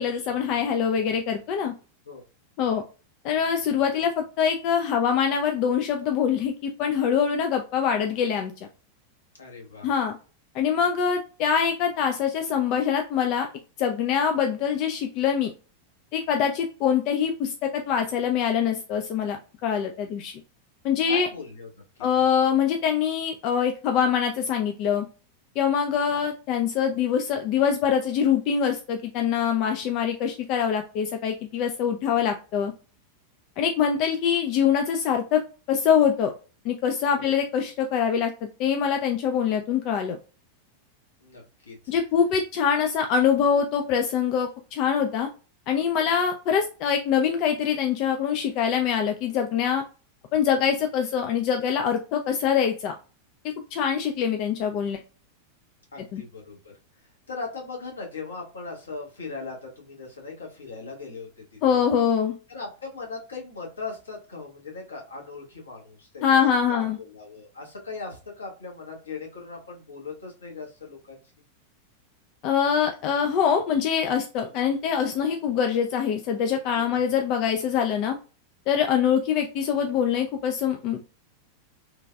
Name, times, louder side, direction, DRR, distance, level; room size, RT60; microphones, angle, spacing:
voice 1, 0.0-1.7 2.6-2.8 3.2-8.5 9.8-10.1 10.5-13.5 13.8-15.5 16.1-20.3 20.8-21.3 22.0-25.1 25.6-32.7 33.6-35.4 35.7-36.3 36.6-38.3 38.6-40.2 41.9-45.3 45.7-49.8 50.3-52.9 53.7-55.0 56.1-56.2 61.6-62.4 66.2-67.0 72.4-78.2 78.7-81.0, left 7 dB, 40° left, 5 dB, 0.3 m, -24 dB
voice 2, 9.4-9.9 21.1-21.7 37.1-37.3 41.2-41.9 55.9-56.7 57.0-61.4 61.7-61.9 62.5-66.4 66.7-71.2 76.7-77.1, left 4 dB, 70° left, -1 dB, 1.0 m, -39 dB
3.2 x 2.3 x 2.2 m, 0.35 s
figure-of-eight pair, 90°, 0 cm